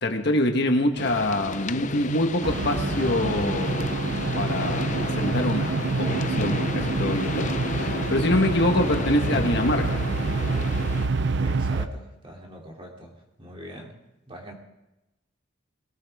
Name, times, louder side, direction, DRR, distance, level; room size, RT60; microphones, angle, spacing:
voice 1, 0.0-3.9 4.3-10.0, left 1 dB, 55° left, 4 dB, 1.5 m, -25 dB
sound 1, 1.0-11.1, left 4 dB, 40° left, 0.5 m, -33 dB
sound 2, 2.4-11.9, right 3 dB, 60° right, 0.7 m, -27 dB
sound 3, 2.7-3.2 4.7-5.1 5.4-5.8 6.8-7.3 8.0-8.4 9.2-9.9 10.8-11.1, left 1 dB, 5° left, 1.8 m, -39 dB
voice 2, 11.3-14.0 14.3-14.5, equal, 25° right, -1 dB, 2.9 m, -43 dB
21.5 x 17.5 x 3.6 m, 0.96 s
head